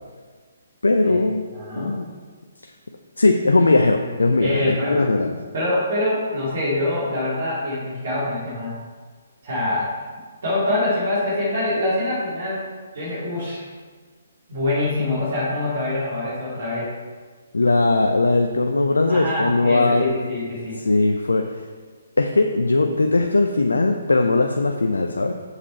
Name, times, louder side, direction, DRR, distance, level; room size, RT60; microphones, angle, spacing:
voice 1, 0.8-1.4 1.7-2.0 3.2-5.3 17.5-20.1 20.8-21.6 22.2-25.3, left 2 dB, 75° left, 4 dB, 0.6 m, -19 dB
voice 2, 1.5-2.0 4.4-5.0 5.5-8.7 9.4-9.9 10.4-12.6 12.9-13.6 14.5-16.9 19.1-20.8, left 1 dB, 55° right, -7 dB, 2.4 m, -24 dB
7.2 x 6.7 x 4.3 m, 1.5 s
figure-of-eight pair, 135°, 0 cm